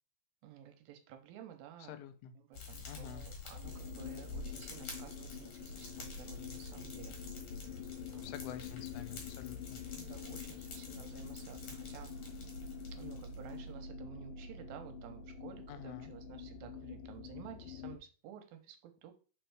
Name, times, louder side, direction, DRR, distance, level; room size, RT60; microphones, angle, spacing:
voice 1, 0.4-2.0 2.4-7.1 8.1-8.3 9.9-12.1 12.9-19.1, right 10 dB, 80° right, 6 dB, 2.4 m, -53 dB
voice 2, 1.9-2.3 2.9-3.3 8.2-9.8 15.7-16.1, left 9 dB, 90° left, 10 dB, 2.5 m, -48 dB
Fire, 2.5-13.7, left 4 dB, 55° left, 2.1 m, -48 dB
sound 1, 3.6-18.0, left 6 dB, 75° left, 2.3 m, -47 dB
4.7 x 4.4 x 4.6 m, 0.38 s
omnidirectional pair, 4.4 m